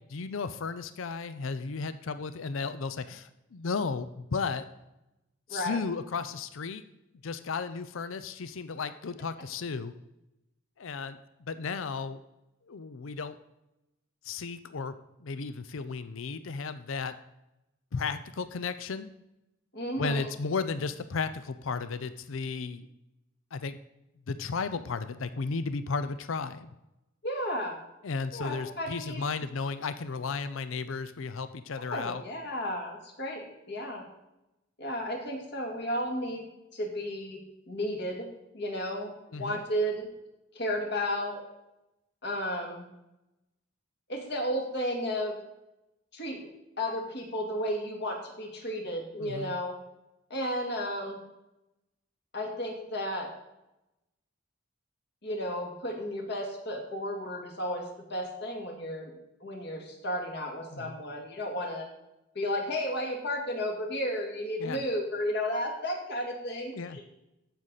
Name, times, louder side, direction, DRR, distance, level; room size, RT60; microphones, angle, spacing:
voice 1, 0.1-4.7 5.5-6.8 7.2-9.9 10.8-12.2 12.7-13.4 14.2-15.0 15.2-17.2 17.9-19.1 20.0-22.9 23.5-23.8 24.3-26.7 28.0-32.2 39.3-39.6 49.2-49.6 60.7-61.0 64.6-64.8 66.7-67.0, left 4 dB, 75° left, 12 dB, 0.5 m, -34 dB
voice 2, 5.5-5.8 19.7-20.3 27.2-27.8 28.3-29.2 31.9-34.0 34.8-36.4 36.7-37.4 37.7-38.3 38.5-39.1 39.4-40.1 40.5-41.4 42.2-42.8 44.1-45.4 46.1-46.4 46.8-49.7 50.3-51.2 52.3-53.3 55.2-59.1 59.4-61.9 62.3-67.1, equal, 55° left, 1 dB, 2.3 m, -33 dB
15.0 x 6.5 x 4.1 m, 0.92 s
head